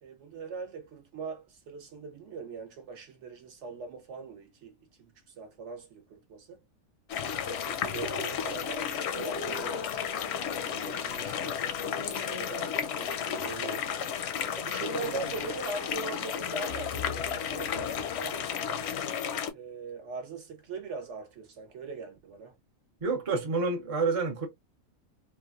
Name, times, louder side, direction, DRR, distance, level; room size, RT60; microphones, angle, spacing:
voice 1, 0.0-6.6 7.4-9.9 10.6-13.9 14.6-18.9 19.5-22.6, right 4 dB, 60° right, 1.0 m, -41 dB
sound 1, 7.1-19.5, left 8 dB, 65° left, 0.7 m, -33 dB
voice 2, 23.0-24.5, right 4 dB, 35° right, 0.6 m, -28 dB
3.1 x 2.3 x 2.3 m
omnidirectional pair, 1.4 m